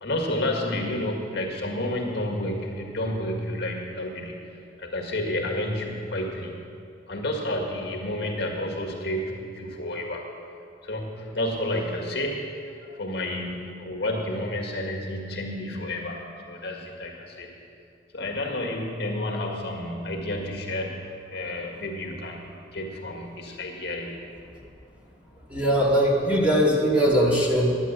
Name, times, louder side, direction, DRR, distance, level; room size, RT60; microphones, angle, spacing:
voice 1, 0.0-6.6 7.1-10.3 10.8-12.5 12.9-17.5 18.1-21.1 21.3-24.3, left 1 dB, 60° left, 0 dB, 1.8 m, -30 dB
voice 2, 25.5-27.7, equal, 10° right, -4 dB, 2.2 m, -21 dB
10.5 x 9.9 x 8.1 m, 2.4 s
head